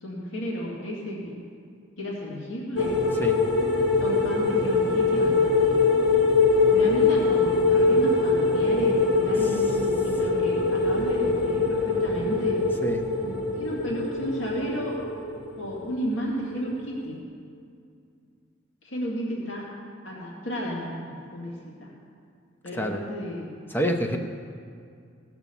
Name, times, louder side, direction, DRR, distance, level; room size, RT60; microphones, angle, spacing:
voice 1, 0.0-1.4 2.0-2.9 4.0-5.9 6.7-12.6 13.2-15.0 15.6-17.2 18.8-19.6 20.0-21.9 22.6-23.5, equal, 75° left, -4 dB, 2.4 m, -33 dB
sound 1, 2.8-16.2 16.5-16.7, left 3 dB, 55° left, 1.3 m, -23 dB
voice 2, 22.7-23.1 23.7-24.2, equal, 10° left, 4 dB, 0.7 m, -27 dB
17.5 x 6.0 x 7.0 m, 2.3 s
head